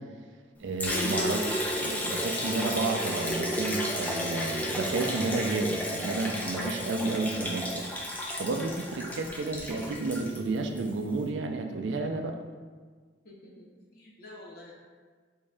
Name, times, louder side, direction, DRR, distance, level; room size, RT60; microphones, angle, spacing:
voice 1, 0.6-7.9 8.4-12.3, right 3 dB, 80° right, 4 dB, 0.4 m, -31 dB
Liquid, 0.8-10.9, equal, 10° left, 0.3 m, -32 dB
voice 2, 13.2-14.7, left 1 dB, 55° left, -3 dB, 0.5 m, -49 dB
3.5 x 2.7 x 3.3 m, 1.5 s
head